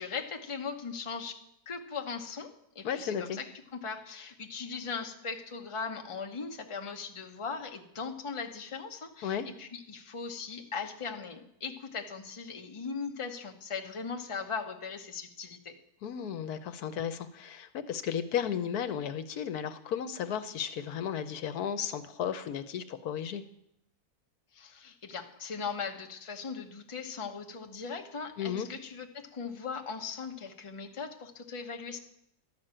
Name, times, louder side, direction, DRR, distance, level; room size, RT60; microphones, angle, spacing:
voice 1, 0.0-1.4 1.7-3.5 3.7-15.7 24.5-32.0, left 5 dB, 25° left, 4 dB, 0.9 m, -39 dB
voice 2, 2.8-3.4 9.2-9.5 16.0-23.4 28.4-28.7, left 8 dB, 80° left, 11 dB, 1.3 m, -34 dB
12.5 x 6.1 x 8.9 m, 0.76 s
omnidirectional pair, 1.6 m